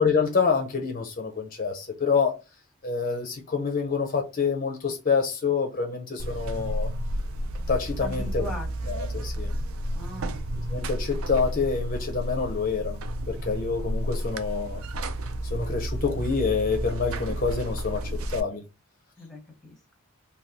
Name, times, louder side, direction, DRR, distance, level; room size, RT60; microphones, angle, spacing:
voice 1, 0.0-2.4 2.8-6.9 7.7-8.4 8.9-9.5 10.7-13.0 13.3-14.8 15.5-18.6, left 5 dB, 40° left, 0.5 m, -27 dB
Buzz, 6.2-18.4, right 1 dB, 65° right, 0.4 m, -31 dB
voice 2, 8.0-9.0 9.9-10.4 19.2-19.8, left 1 dB, ahead, 0.8 m, -40 dB
3.4 x 2.2 x 2.6 m
head